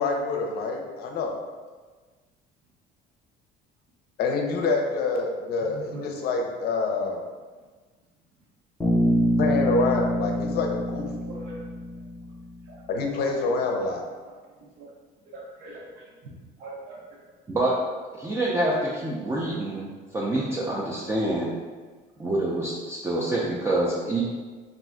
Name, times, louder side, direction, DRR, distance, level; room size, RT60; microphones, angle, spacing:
voice 1, 0.0-1.4 4.2-7.2 9.4-11.3 12.9-14.0, left 3 dB, 60° left, 2 dB, 0.5 m, -26 dB
voice 2, 5.7-6.0 11.1-11.6 12.7-12.8 13.2-13.5 14.8-14.9 15.3-15.8 16.6-17.0, right 2 dB, 80° right, -3 dB, 0.7 m, -41 dB
Bass guitar, 8.8-12.7, equal, 10° left, 0.8 m, -26 dB
voice 3, 18.1-19.9 20.1-21.5 22.2-24.2, right 1 dB, 15° right, -6 dB, 0.3 m, -26 dB
2.4 x 2.2 x 3.6 m, 1.4 s
cardioid pair, 120°, 18 cm